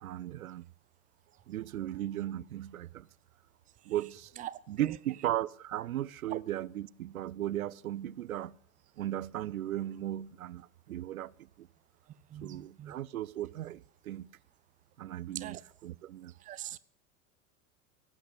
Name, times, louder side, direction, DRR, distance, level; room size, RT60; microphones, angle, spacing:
voice 1, 0.0-0.6 1.5-3.1 3.9-4.3 4.7-8.5 9.0-11.7 12.4-14.3 15.0-16.3 16.6-16.8, right 13 dB, 75° right, 0.5 m, -37 dB
voice 2, 12.3-12.9 15.3-15.6 16.5-16.8, right 12 dB, 20° right, 0.5 m, -41 dB
17.5 x 7.9 x 8.2 m
figure-of-eight pair, 80°, 43 cm